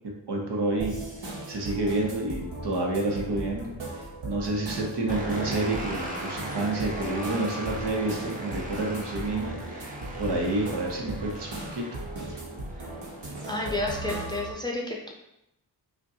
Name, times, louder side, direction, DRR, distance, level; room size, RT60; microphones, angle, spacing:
voice 1, 0.3-1.0 1.5-11.8, right 2 dB, 70° right, 0 dB, 0.9 m, -29 dB
sound 1, 0.8-14.5, right 2 dB, 90° right, 1.0 m, -37 dB
sound 2, 5.1-13.8, right 1 dB, 20° right, 0.8 m, -39 dB
voice 2, 13.5-15.1, left 2 dB, 10° left, -1 dB, 0.5 m, -31 dB
5.0 x 2.2 x 2.7 m, 0.83 s
wide cardioid pair, 80°, 43 cm